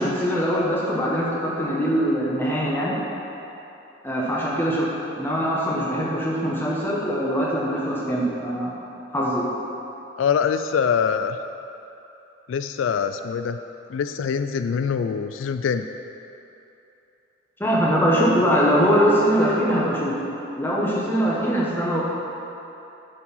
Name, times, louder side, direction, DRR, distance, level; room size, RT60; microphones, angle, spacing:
voice 1, 0.0-2.9 4.0-4.9 5.2-8.7 9.1-9.5 17.6-22.0, equal, 10° left, -5 dB, 1.2 m, -22 dB
voice 2, 10.2-11.4 12.5-13.6 13.9-15.8, left 6 dB, 80° left, 9 dB, 0.3 m, -24 dB
10.0 x 4.7 x 5.5 m, 2.9 s
head